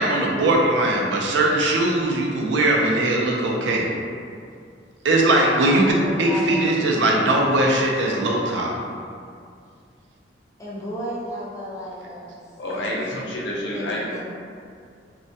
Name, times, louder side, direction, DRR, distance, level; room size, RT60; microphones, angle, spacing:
voice 1, 0.0-3.9 5.0-5.9 6.2-8.7, right 1 dB, 85° right, -1 dB, 0.4 m, -20 dB
voice 2, 5.8-6.7 10.6-12.4 12.7-12.9 13.7-14.2, equal, 15° left, -8 dB, 0.5 m, -34 dB
voice 3, 12.6-14.2, left 1 dB, 75° left, -4 dB, 0.5 m, -28 dB
2.2 x 2.1 x 2.6 m, 2.3 s
head